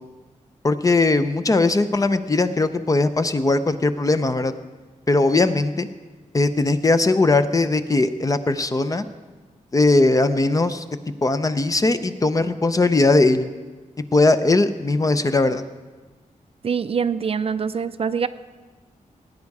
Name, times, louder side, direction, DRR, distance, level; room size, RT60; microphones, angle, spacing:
voice 1, 0.6-4.5 5.1-5.9 6.3-9.1 9.7-10.8 11.2-13.5 14.1-15.6, left 2 dB, 25° left, 10 dB, 0.6 m, -19 dB
voice 2, 16.6-18.3, right 6 dB, 45° right, 12 dB, 0.4 m, -24 dB
18.0 x 9.5 x 4.8 m, 1.3 s
wide cardioid pair, 140°, 14 cm